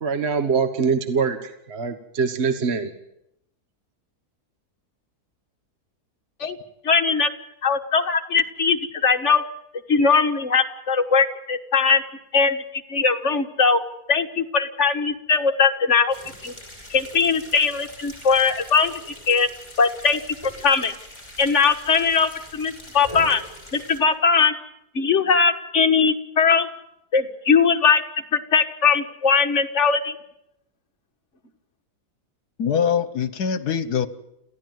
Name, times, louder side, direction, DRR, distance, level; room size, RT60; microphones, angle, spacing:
voice 1, 0.0-2.9, right 5 dB, 45° right, 10 dB, 1.5 m, -23 dB
voice 2, 6.8-7.3 7.6-9.4 9.9-12.0 12.3-12.6 12.9-13.8 14.1-16.2 16.4-16.5 16.9-18.9 19.3-19.5 19.8-20.2 20.6-20.9 21.4-23.4 23.7-24.5 25.0-26.7 27.1-28.0 28.3-30.2, left 5 dB, 45° left, 6 dB, 1.8 m, -20 dB
sound 1, 16.1-24.0, equal, 15° left, 5.8 m, -42 dB
voice 3, 32.6-34.1, left 7 dB, 75° left, 15 dB, 1.8 m, -23 dB
28.0 x 15.5 x 9.4 m, 0.80 s
omnidirectional pair, 1.7 m